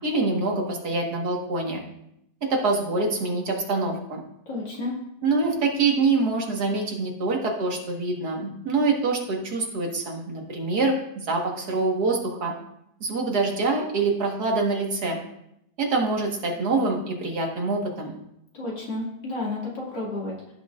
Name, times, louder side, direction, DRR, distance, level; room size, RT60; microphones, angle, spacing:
voice 1, 0.0-1.8 2.4-4.2 5.2-12.5 13.0-15.2 15.8-18.1, right 3 dB, 60° right, 0 dB, 2.1 m, -25 dB
voice 2, 4.5-4.9 18.5-20.5, left 2 dB, 85° left, -4 dB, 3.1 m, -31 dB
15.5 x 6.3 x 2.5 m, 0.79 s
omnidirectional pair, 1.9 m